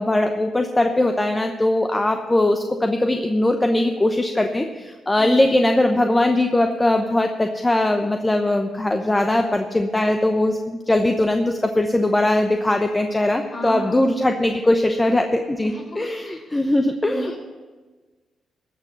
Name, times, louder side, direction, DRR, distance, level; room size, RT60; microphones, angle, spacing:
voice 1, 0.0-17.3, left 1 dB, 20° left, 5 dB, 0.9 m, -20 dB
voice 2, 5.2-5.5 13.5-14.0 15.6-15.8 16.2-16.4 17.0-17.4, equal, 45° left, 1 dB, 4.2 m, -32 dB
15.0 x 6.1 x 8.1 m, 1.3 s
cardioid pair, 65°, 0 cm